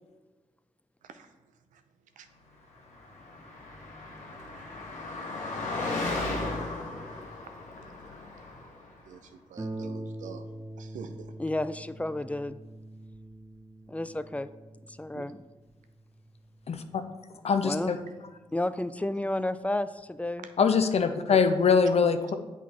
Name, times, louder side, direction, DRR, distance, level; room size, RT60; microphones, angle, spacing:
voice 1, 1.0-1.8 2.2-2.3 3.0-3.1 7.8-8.0 9.0-10.5 10.8-11.4 15.1-15.2 17.7-17.9 20.4-20.5 21.7-21.8 22.1-22.2, right 7 dB, 75° right, 9 dB, 0.5 m, -47 dB
Car passing by, 2.9-8.9, left 2 dB, 70° left, 1.2 m, -35 dB
Harp, 9.6-18.7 19.6-19.7 20.2-20.3, right 1 dB, 25° right, 0.7 m, -44 dB
voice 2, 11.4-12.6 13.9-14.5 14.9-15.4 17.6-17.9 18.5-20.5, left 1 dB, 10° left, 14 dB, 0.3 m, -31 dB
voice 3, 17.4-18.0 20.6-22.3, left 5 dB, 50° left, 8 dB, 0.6 m, -23 dB
8.2 x 4.1 x 2.9 m, 1.2 s
supercardioid pair, 40°, 13 cm